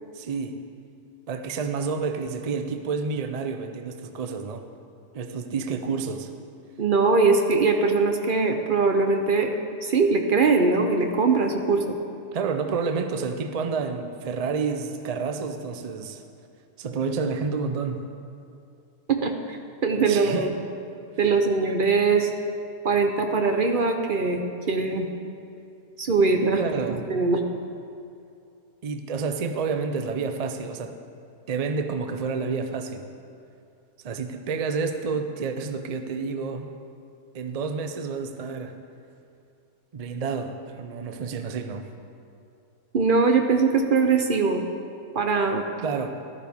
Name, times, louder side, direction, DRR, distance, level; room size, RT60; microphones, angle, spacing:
voice 1, 0.1-0.6 1.3-4.6 5.1-6.3 12.3-16.2 16.8-18.0 20.1-20.5 26.5-27.0 28.8-31.0 31.5-33.1 34.0-36.7 37.3-38.7 39.9-41.9 45.8-46.1, right 5 dB, 85° right, 7 dB, 0.3 m, -29 dB
voice 2, 6.8-9.5 9.8-12.0 19.1-20.5 21.2-22.3 22.8-25.1 26.0-26.6 26.9-27.4 42.9-44.7 45.1-45.6, right 4 dB, 50° right, 4 dB, 0.7 m, -22 dB
13.5 x 12.5 x 3.6 m, 2.5 s
omnidirectional pair, 1.7 m